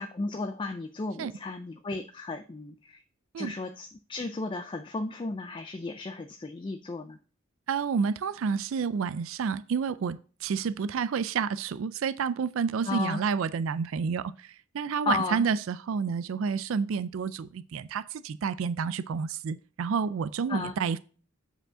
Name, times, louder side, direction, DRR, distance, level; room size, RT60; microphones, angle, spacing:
voice 1, 0.0-3.0 3.4-7.2 12.9-13.2 15.1-15.5 20.5-20.7, left 3 dB, 25° left, 0.3 m, -34 dB
voice 2, 7.7-21.0, right 6 dB, 70° right, 0.4 m, -30 dB
7.8 x 5.0 x 3.7 m
head